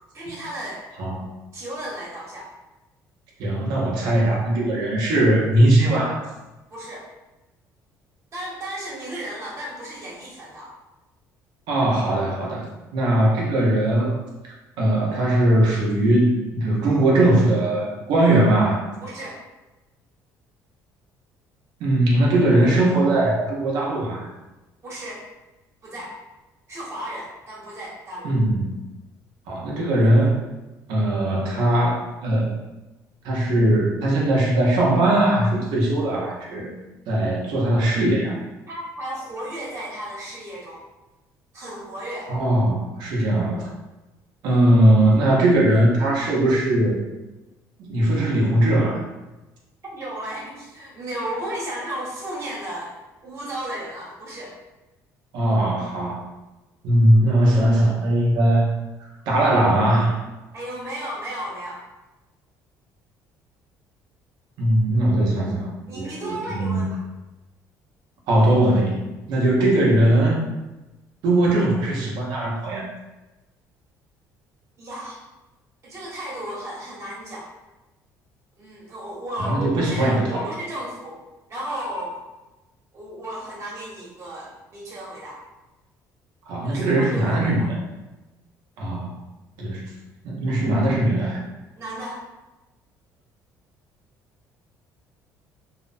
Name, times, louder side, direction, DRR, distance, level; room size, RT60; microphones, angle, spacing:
voice 1, 0.1-0.8 1.5-2.5 6.7-7.1 8.3-10.7 19.0-19.4 24.8-25.2 25.8-26.1 26.7-28.3 38.7-40.8 41.5-42.3 49.8-52.9 53.2-54.5 60.5-61.8 65.9-67.0 74.8-75.2 75.8-77.5 78.6-81.2 81.5-82.2 82.9-85.4 86.6-87.7 91.7-92.2, right 1 dB, 40° right, -5 dB, 1.1 m, -34 dB
voice 2, 3.4-6.3 11.7-12.7 12.9-14.2 14.8-18.9 21.8-24.3 28.2-28.7 29.5-30.4 30.9-32.6 33.2-36.7 37.1-38.4 42.3-43.7 44.4-47.0 47.8-49.0 55.3-56.3 56.8-58.7 59.3-60.3 64.6-65.7 65.9-66.9 68.3-70.4 71.2-72.9 79.4-80.5 86.5-87.8 88.8-89.2 89.6-89.9 90.2-91.4, right 1 dB, 75° right, -3 dB, 0.7 m, -20 dB
2.8 x 2.0 x 2.5 m, 1.1 s
cardioid pair, 105°, 7 cm